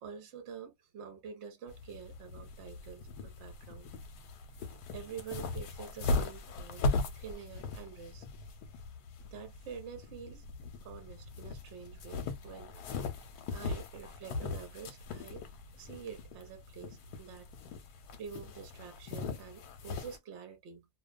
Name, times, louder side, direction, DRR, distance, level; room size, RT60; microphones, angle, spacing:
voice 1, 0.0-3.9 4.9-8.3 9.3-10.5 10.8-12.7 13.1-15.5 15.8-17.5 18.2-20.9, right 7 dB, 60° right, 0.8 m, -47 dB
sound 1, 1.7-20.2, left 3 dB, 85° left, 1.2 m, -39 dB
2.5 x 2.3 x 2.3 m
omnidirectional pair, 1.6 m